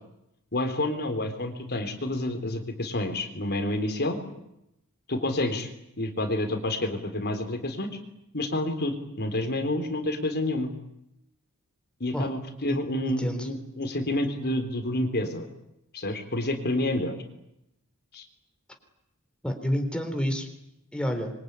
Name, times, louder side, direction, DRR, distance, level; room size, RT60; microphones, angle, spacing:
voice 1, 0.5-4.2 5.1-5.7 6.0-7.9 8.3-10.7 12.0-15.5 15.9-17.2 18.1-18.3, left 1 dB, 50° left, 7 dB, 3.7 m, -29 dB
voice 2, 13.1-13.5 19.4-20.5 20.9-21.3, equal, 5° left, 4 dB, 3.8 m, -29 dB
26.0 x 24.0 x 9.6 m, 0.84 s
head